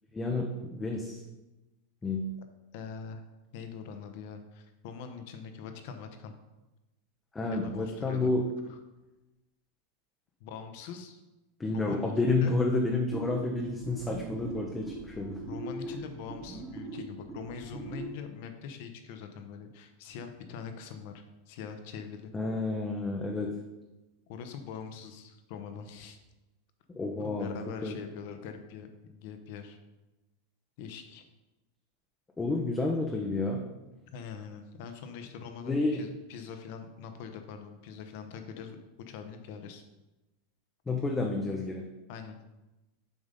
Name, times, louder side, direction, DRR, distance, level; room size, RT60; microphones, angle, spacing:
voice 1, 0.1-1.2 2.0-2.3 7.3-8.4 11.6-15.4 22.3-23.5 26.9-27.5 27.8-27.9 32.4-33.6 35.6-36.0 40.9-41.9, left 3 dB, 10° left, 1 dB, 0.6 m, -30 dB
voice 2, 2.7-3.2 3.5-6.3 7.5-8.3 8.6-8.8 10.4-11.2 11.7-12.1 12.4-12.5 15.5-22.3 24.3-26.2 27.2-29.8 30.8-31.2 34.1-39.9 42.1-42.4, left 6 dB, 55° left, 7 dB, 0.9 m, -43 dB
sound 1, 13.1-18.2, right 2 dB, 15° right, 1.0 m, -41 dB
7.1 x 3.9 x 5.3 m, 1.0 s
supercardioid pair, 150°, 0 cm